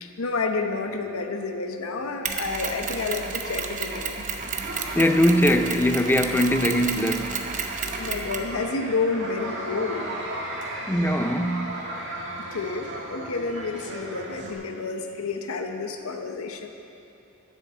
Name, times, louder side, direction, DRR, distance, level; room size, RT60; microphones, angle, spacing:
voice 1, 0.0-4.3 8.0-10.1 12.5-16.7, left 4 dB, 75° left, 0.8 m, -30 dB
Mechanisms, 2.2-8.5, right 5 dB, 35° right, 0.9 m, -32 dB
sound 1, 4.3-14.5, right 1 dB, 55° right, 2.0 m, -36 dB
voice 2, 5.0-7.4 10.9-11.8, equal, 10° left, 0.4 m, -21 dB
11.0 x 6.9 x 8.5 m
head